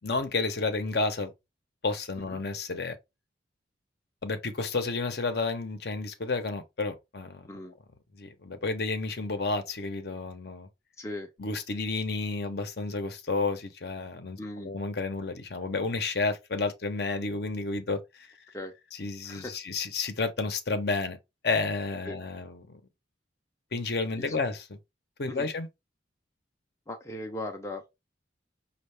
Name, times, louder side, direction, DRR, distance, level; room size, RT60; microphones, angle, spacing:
voice 1, 0.0-1.3 1.8-3.0 4.2-7.5 8.1-10.7 11.4-18.3 19.0-21.2 21.4-22.8 23.7-24.6 25.2-25.7, left 3 dB, 55° left, 0.7 m, -31 dB
voice 2, 7.5-7.8 11.0-11.3 14.4-14.7 18.5-18.7 19.2-19.6 22.0-22.2 24.1-24.4 25.3-25.5 26.9-27.8, left 1 dB, 15° left, 0.5 m, -38 dB
5.5 x 2.3 x 3.3 m
head